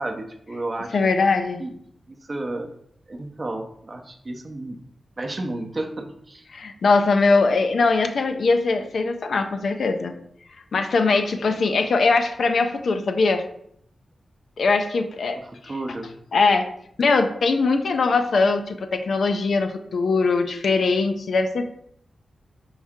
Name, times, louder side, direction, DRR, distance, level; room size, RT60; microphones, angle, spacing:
voice 1, 0.0-1.0 1.6-1.7 2.1-2.7 3.1-4.8 5.2-6.4 15.4-16.1, right 2 dB, 30° right, 4 dB, 0.6 m, -32 dB
voice 2, 0.9-1.6 6.5-10.1 10.7-13.4 14.6-15.4 16.3-16.7 17.0-21.6, left 3 dB, 70° left, 7 dB, 0.4 m, -21 dB
4.7 x 2.7 x 3.5 m, 0.69 s
wide cardioid pair, 100°, 0 cm